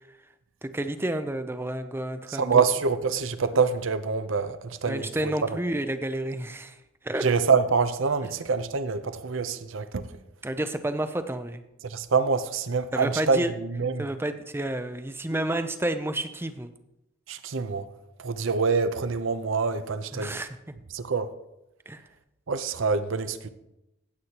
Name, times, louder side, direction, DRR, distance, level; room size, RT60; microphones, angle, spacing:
voice 1, 0.6-2.6 4.9-6.8 7.0-7.3 10.4-11.6 12.9-13.5 14.0-16.7 20.1-20.5 21.9-22.0, right 1 dB, 10° right, 0.5 m, -30 dB
voice 2, 2.3-5.6 7.2-10.1 11.8-14.1 17.3-17.9 18.2-20.4 20.9-21.3 22.5-23.5, right 5 dB, 70° right, 0.6 m, -26 dB
15.5 x 8.2 x 2.9 m
head